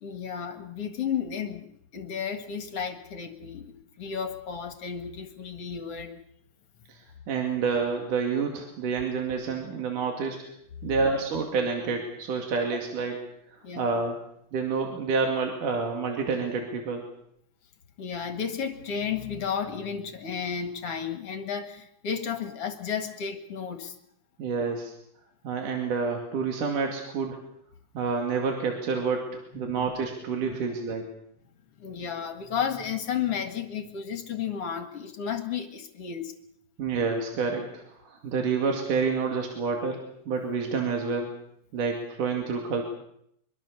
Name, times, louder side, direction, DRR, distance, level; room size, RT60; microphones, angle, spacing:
voice 1, 0.0-6.2 13.6-14.0 18.0-24.0 29.6-29.9 30.4-30.6 31.8-36.4, left 7 dB, 50° left, 8 dB, 2.5 m, -33 dB
voice 2, 7.3-10.4 10.8-13.2 13.8-14.2 14.5-17.1 24.4-24.9 25.4-27.4 28.0-31.1 36.8-40.0 40.3-41.3 41.7-42.8, right 5 dB, 75° right, 3 dB, 3.9 m, -28 dB
24.0 x 24.0 x 6.9 m, 0.72 s
omnidirectional pair, 3.8 m